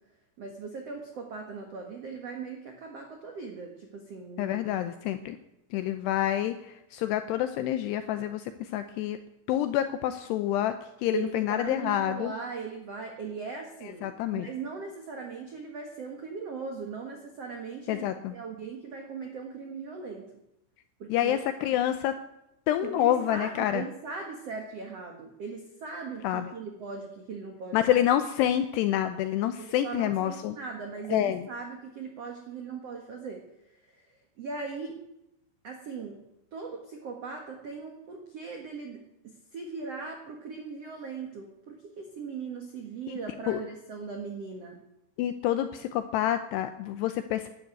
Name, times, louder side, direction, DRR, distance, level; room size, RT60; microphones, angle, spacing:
voice 1, 0.4-4.6 11.1-20.3 21.0-21.4 22.8-28.0 29.8-33.5 33.9-34.0 34.4-35.0 35.6-36.2 36.5-44.8, right 5 dB, 85° right, 3 dB, 1.4 m, -39 dB
voice 2, 4.4-5.4 5.7-9.2 9.5-10.7 11.0-12.3 13.8-14.5 17.9-18.3 21.1-22.1 22.7-23.9 26.2-26.5 27.7-30.6 31.1-31.4 43.1-43.2 43.5-43.6 45.2-47.5, left 12 dB, 85° left, 9 dB, 2.4 m, -28 dB
12.5 x 11.5 x 9.2 m, 0.85 s
omnidirectional pair, 5.6 m